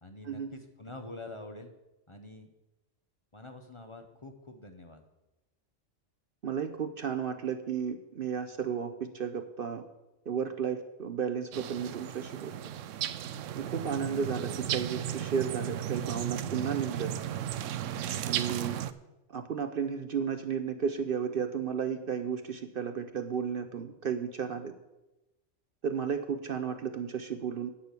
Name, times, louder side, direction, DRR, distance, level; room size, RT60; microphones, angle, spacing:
voice 1, 0.0-1.7 2.1-2.5 3.3-5.0, left 2 dB, 25° left, 5 dB, 0.9 m, -46 dB
voice 2, 6.4-9.8 10.3-12.6 13.6-17.1 18.2-18.8 19.3-24.7 25.8-27.7, right 7 dB, 55° right, 9 dB, 0.8 m, -33 dB
sound 1, 11.5-18.9, right 10 dB, 85° right, 0.9 m, -35 dB
9.7 x 6.5 x 8.2 m, 0.99 s
omnidirectional pair, 1.3 m